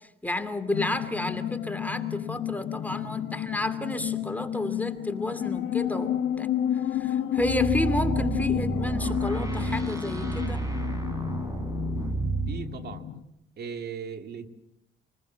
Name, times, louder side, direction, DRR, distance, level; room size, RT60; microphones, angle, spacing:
voice 1, 0.2-6.5 6.9-10.6, left 1 dB, 10° left, 8 dB, 2.6 m, -31 dB
sound 1, 0.7-13.2, left 10 dB, 75° left, 2.2 m, -31 dB
sound 2, 7.4-12.6, right 2 dB, 15° right, 6.3 m, -30 dB
voice 2, 12.5-13.1 13.6-14.5, right 6 dB, 55° right, 7 dB, 2.3 m, -37 dB
28.0 x 20.5 x 7.4 m, 0.82 s
cardioid pair, 90°, 20 cm